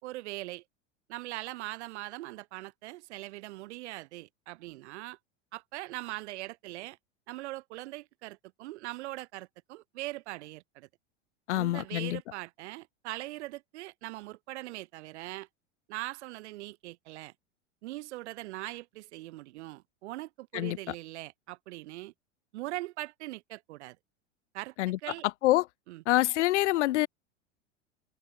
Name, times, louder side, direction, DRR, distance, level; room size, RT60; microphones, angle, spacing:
voice 1, 0.0-0.6 1.1-5.2 5.5-7.0 7.3-10.9 11.5-15.5 15.9-17.3 17.8-22.1 22.5-24.0 24.5-24.7 25.0-25.3 25.9-26.0, right 18 dB, 65° right, 2.9 m, -41 dB
voice 2, 11.5-12.2 20.5-20.9 24.8-25.7 26.0-27.1, left 16 dB, 70° left, 1.2 m, -27 dB
open air
hypercardioid pair, 100°, 36 cm